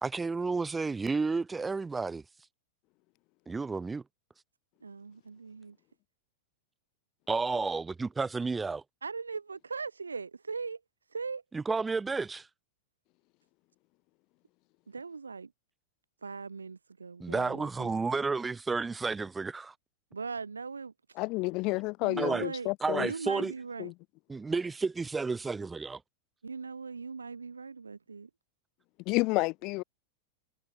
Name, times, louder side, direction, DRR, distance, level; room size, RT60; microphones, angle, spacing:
voice 1, 0.0-2.2 3.5-4.0 7.3-8.8 11.5-12.5 17.2-19.7 22.2-22.4 22.8-23.5 24.3-26.0, right 4 dB, 10° right, 0.3 m, -31 dB
voice 2, 4.8-5.8 9.0-10.8 11.1-11.4 14.9-15.5 16.2-18.2 20.1-20.9 22.0-22.7 22.9-23.9 26.4-28.3, right 4 dB, 75° right, 3.2 m, -40 dB
voice 3, 21.1-23.1 23.8-23.9 29.0-29.8, left 24 dB, 40° left, 1.4 m, -30 dB
figure-of-eight pair, 90°, 0 cm